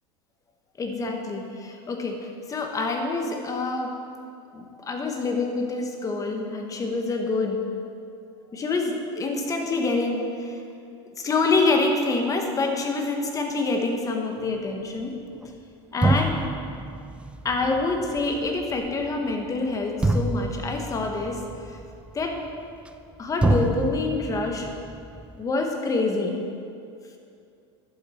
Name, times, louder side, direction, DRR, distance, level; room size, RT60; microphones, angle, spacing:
voice 1, 0.8-2.2 2.5-3.9 4.5-7.7 8.5-10.6 11.2-15.1 15.9-16.3 17.4-21.4 21.7-21.8 22.1-22.4 23.2-24.7 25.4-26.4, left 3 dB, 25° left, 3 dB, 1.3 m, -26 dB
sound 1, 15.4-15.5 16.0-23.1 23.4-25.4, right 2 dB, 5° right, 0.4 m, -28 dB
11.0 x 7.5 x 4.4 m, 2.5 s
supercardioid pair, 120°, 15 cm